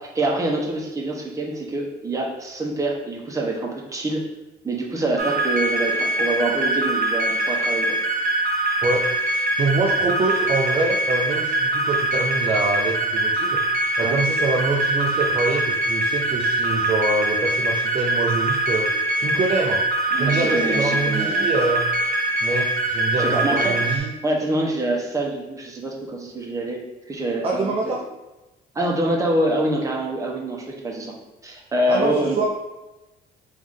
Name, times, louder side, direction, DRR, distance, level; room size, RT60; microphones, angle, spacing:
voice 1, 0.1-4.2 4.6-8.0 14.0-14.2 20.1-21.5 23.2-23.8 24.2-26.8 27.1-27.9 28.7-31.1 31.4-32.4, right 1 dB, 20° right, -1 dB, 0.9 m, -25 dB
sound 1, 5.2-24.0, right 1 dB, 55° right, 0.8 m, -23 dB
voice 2, 8.8-13.6 14.0-18.9 19.2-19.8 20.1-21.9 22.4-24.1 27.4-28.0 31.9-32.5, right 3 dB, 35° right, -1 dB, 0.5 m, -25 dB
3.5 x 3.2 x 3.6 m, 1.0 s
cardioid pair, 110°, 17 cm